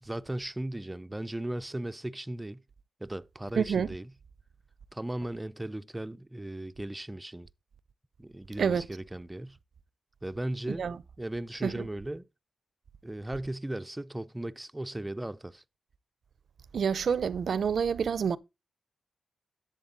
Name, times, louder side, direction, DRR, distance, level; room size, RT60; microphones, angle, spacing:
voice 1, 0.0-2.6 3.0-4.1 4.9-7.5 8.2-9.6 10.2-10.9 11.2-12.3 13.0-15.6, right 1 dB, 10° right, 0.4 m, -37 dB
voice 2, 3.6-3.9 8.6-8.9 10.7-11.0 11.6-11.9 16.7-18.4, right 6 dB, 65° right, 0.5 m, -28 dB
11.0 x 7.8 x 3.8 m
wide cardioid pair, 105°, 0 cm